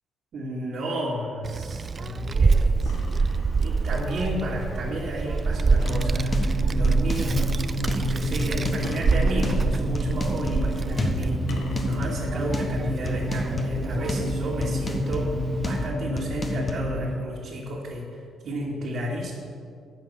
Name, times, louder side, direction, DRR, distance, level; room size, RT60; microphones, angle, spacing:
voice 1, 0.3-7.6 7.9-15.3 15.6-18.1 18.4-19.3, equal, 65° right, -6 dB, 2.1 m, -32 dB
Child speech kid speaking, 1.4-15.9, right 4 dB, 35° right, 0.4 m, -26 dB
sound 1, 2.8-3.9 5.8-6.9 8.8-10.0 11.5-12.5, left 3 dB, 80° left, 1.5 m, -43 dB
sound 2, 5.8-17.2, left 1 dB, 30° left, 1.4 m, -29 dB
11.5 x 5.8 x 8.6 m, 2.3 s
cardioid pair, 90°, 0 cm